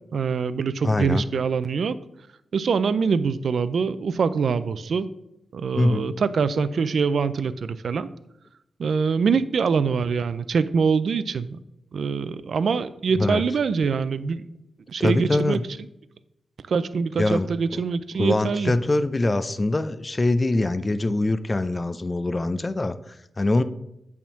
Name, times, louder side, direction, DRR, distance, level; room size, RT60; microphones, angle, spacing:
voice 1, 0.1-2.0 2.5-5.1 5.5-8.1 8.8-11.6 11.9-14.4 14.9-15.6 16.7-18.7, right 5 dB, 70° right, 14 dB, 0.4 m, -24 dB
voice 2, 0.8-1.2 5.8-6.1 13.2-13.4 15.0-15.6 17.2-17.8 18.2-23.6, left 2 dB, 30° left, 12 dB, 0.4 m, -23 dB
8.6 x 3.6 x 5.8 m, 0.85 s
cardioid pair, 80°, 0 cm